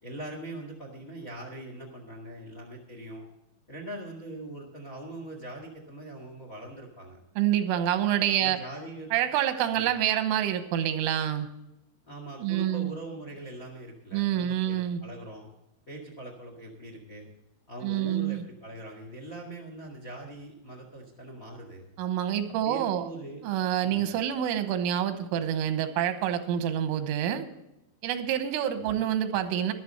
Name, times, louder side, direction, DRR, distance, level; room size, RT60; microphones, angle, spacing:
voice 1, 0.0-3.2 3.7-7.2 8.4-9.1 9.7-9.9 12.0-15.5 15.9-17.3 17.7-21.9 22.6-23.4 23.8-24.1 28.7-29.0, right 1 dB, 85° left, 2 dB, 0.7 m, -42 dB
voice 2, 7.4-8.6 9.1-11.5 12.4-12.9 14.1-15.0 17.8-18.4 22.0-23.1 23.4-27.5 28.0-29.7, right 11 dB, 90° right, 9 dB, 3.6 m, -27 dB
13.5 x 12.0 x 4.2 m, 0.88 s
omnidirectional pair, 5.6 m